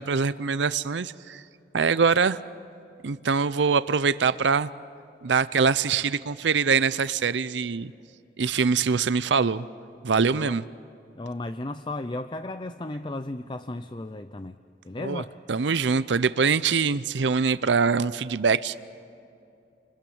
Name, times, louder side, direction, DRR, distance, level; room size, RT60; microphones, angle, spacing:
voice 1, 0.0-1.4 1.7-2.4 3.0-4.7 5.2-7.9 8.4-9.7 10.0-10.6 15.0-15.2 15.5-18.7, right 5 dB, 80° right, 15 dB, 0.6 m, -23 dB
voice 2, 11.1-14.6 14.8-15.4, left 2 dB, 25° left, 10 dB, 0.5 m, -34 dB
29.5 x 21.0 x 8.7 m, 2.6 s
head